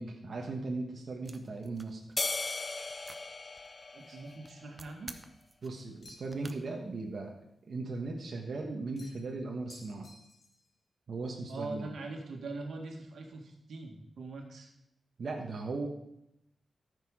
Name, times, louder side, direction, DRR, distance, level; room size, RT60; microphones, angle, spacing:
voice 1, 0.0-2.0 4.1-4.2 5.6-7.4 7.7-10.1 11.1-11.9 15.2-15.9, right 3 dB, 55° right, 0 dB, 1.3 m, -38 dB
sound 1, 1.2-6.5, right 2 dB, 20° right, 0.8 m, -53 dB
sound 2, 2.2-4.8, left 3 dB, 30° left, 0.5 m, -37 dB
voice 2, 3.9-5.1 11.5-14.7, right 3 dB, 85° right, 2 dB, 1.9 m, -42 dB
sound 3, 6.0-6.5 9.0-9.3 9.7-10.7, left 2 dB, 55° left, 2.1 m, -56 dB
14.0 x 6.7 x 4.9 m, 0.81 s
wide cardioid pair, 125°, 0 cm